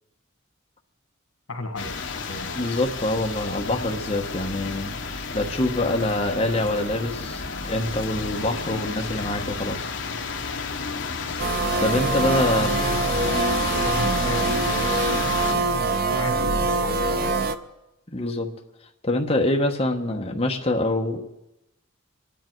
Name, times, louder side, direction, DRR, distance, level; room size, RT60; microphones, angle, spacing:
voice 1, 1.5-2.0 2.3-2.6 12.5-15.7 16.1-17.3, left 2 dB, 85° left, 6 dB, 1.7 m, -35 dB
sound 1, 1.8-15.5, left 4 dB, 60° left, 1.1 m, -31 dB
voice 2, 2.6-4.9 5.3-9.9 11.8-12.7 18.1-18.5 19.0-21.3, left 1 dB, 30° left, 1 dB, 1.1 m, -25 dB
sound 2, 11.4-17.6, right 3 dB, 45° right, 0.6 m, -24 dB
24.5 x 10.0 x 4.6 m, 0.92 s
head